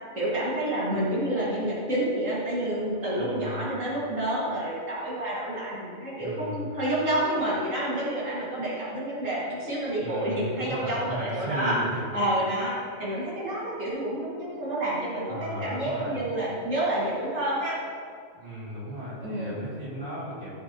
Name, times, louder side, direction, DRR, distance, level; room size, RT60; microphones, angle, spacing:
voice 1, 0.1-11.8 12.1-17.8 19.2-19.6, right 1 dB, 75° right, -8 dB, 2.8 m, -29 dB
voice 2, 3.1-3.6 6.2-6.7 10.0-12.0 15.3-16.2 18.3-20.5, equal, 45° right, -8 dB, 3.1 m, -35 dB
16.0 x 7.5 x 3.1 m, 2.2 s
omnidirectional pair, 1.3 m